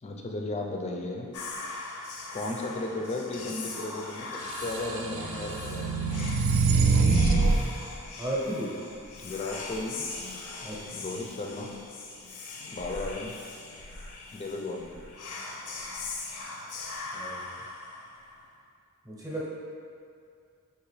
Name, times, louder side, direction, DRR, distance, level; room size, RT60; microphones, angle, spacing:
voice 1, 0.0-1.3 2.3-4.3 4.6-6.1 9.2-10.0 10.9-11.7 12.7-13.4 14.3-15.0, left 2 dB, 30° left, 1 dB, 0.4 m, -35 dB
Whispering, 1.3-18.5, left 3 dB, 85° left, 0.5 m, -40 dB
sound 1, 4.7-7.6, right 3 dB, 60° right, 0.3 m, -24 dB
voice 2, 8.2-8.7 10.6-11.0 17.1-17.5 19.0-19.5, right 1 dB, 15° right, -6 dB, 0.8 m, -34 dB
4.8 x 2.9 x 3.1 m, 2.4 s
head